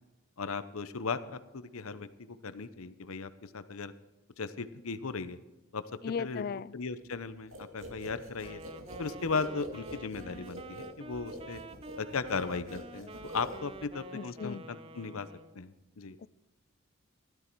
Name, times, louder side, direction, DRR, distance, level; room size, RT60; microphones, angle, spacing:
voice 1, 0.4-3.9 4.4-5.4 5.7-5.8 6.2-6.4 6.7-8.6 9.0-11.6 12.0-15.3 15.5-16.2, left 4 dB, 90° left, 13 dB, 0.8 m, -37 dB
voice 2, 6.0-6.8 14.1-14.6 16.2-16.3, left 6 dB, 45° left, 19 dB, 0.3 m, -36 dB
sound 1, 7.5-14.0, right 1 dB, 70° right, 2.3 m, -45 dB
Wind instrument woodwind instrument, 8.4-15.6, right 3 dB, 25° right, 0.5 m, -48 dB
13.5 x 12.5 x 4.6 m, 1.1 s
head